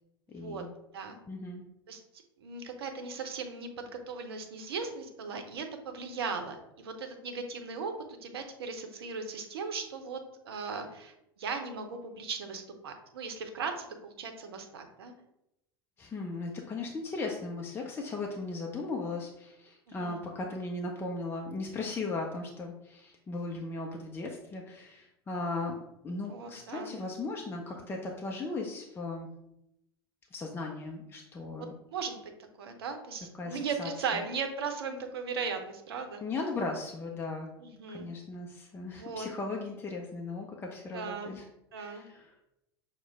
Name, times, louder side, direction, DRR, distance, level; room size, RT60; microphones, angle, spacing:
voice 1, 0.3-0.7 1.3-1.6 16.0-25.8 26.0-29.3 30.3-31.7 33.4-33.9 36.2-37.5 37.9-41.4 41.8-42.3, left 3 dB, 15° left, 0 dB, 0.5 m, -37 dB
voice 2, 2.4-10.2 10.4-15.1 19.9-20.2 26.3-26.9 31.6-32.2 32.6-36.2 37.6-38.1 38.9-39.3 40.9-41.3 41.7-42.1, right 5 dB, 65° right, 6 dB, 0.7 m, -38 dB
6.1 x 2.2 x 3.5 m, 0.84 s
figure-of-eight pair, 80°, 14 cm